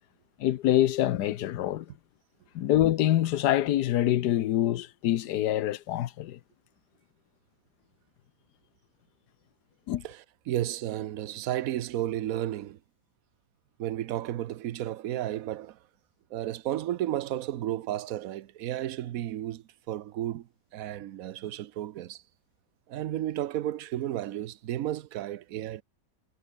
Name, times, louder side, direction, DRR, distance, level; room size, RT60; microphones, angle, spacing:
voice 1, 0.4-1.9 2.5-6.4 9.9-10.0, left 13 dB, 80° left, 1.3 m, -25 dB
voice 2, 10.0-12.8 13.8-15.8 16.3-22.2 22.9-25.8, right 13 dB, 65° right, 1.1 m, -33 dB
omnidirectional pair, 1.8 m